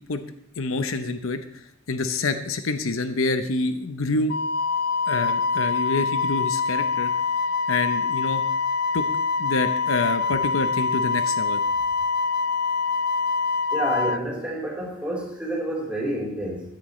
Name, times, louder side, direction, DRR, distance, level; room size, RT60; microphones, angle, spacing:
voice 1, 0.6-1.6 1.9-4.3 5.1-7.1 7.7-8.4 8.9-9.1 9.4-11.6, left 3 dB, 80° left, 9 dB, 0.8 m, -27 dB
Wind instrument woodwind instrument, 4.3-14.2, left 4 dB, 50° left, 0.4 m, -25 dB
voice 2, 13.7-16.6, right 1 dB, 5° right, -5 dB, 3.8 m, -28 dB
15.5 x 10.5 x 3.2 m, 0.68 s
head